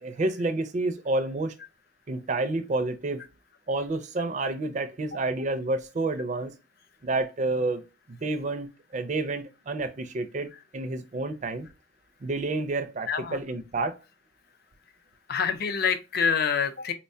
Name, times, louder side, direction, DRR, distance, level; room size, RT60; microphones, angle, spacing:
voice 1, 0.0-1.5 2.1-3.2 3.7-6.5 7.0-7.8 8.1-8.7 8.9-11.7 12.2-14.0, right 2 dB, 35° right, 0.4 m, -29 dB
voice 2, 13.1-13.4 15.3-16.9, left 6 dB, 50° left, 0.4 m, -26 dB
4.0 x 2.2 x 2.6 m
head